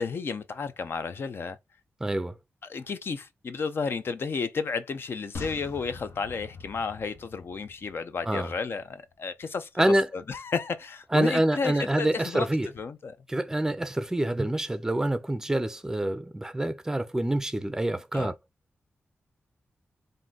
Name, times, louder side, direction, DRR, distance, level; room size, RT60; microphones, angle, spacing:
voice 1, 0.0-1.6 2.6-9.7 10.1-12.5 12.7-13.2 18.1-18.3, left 5 dB, 60° left, 0.6 m, -32 dB
voice 2, 2.0-2.3 8.3-8.5 9.8-10.1 11.1-12.7 13.3-18.3, right 1 dB, 10° right, 0.5 m, -26 dB
sound 1, 5.3-8.8 9.1-9.2, left 4 dB, 85° left, 0.9 m, -44 dB
3.7 x 2.6 x 3.9 m
wide cardioid pair, 110°, 4 cm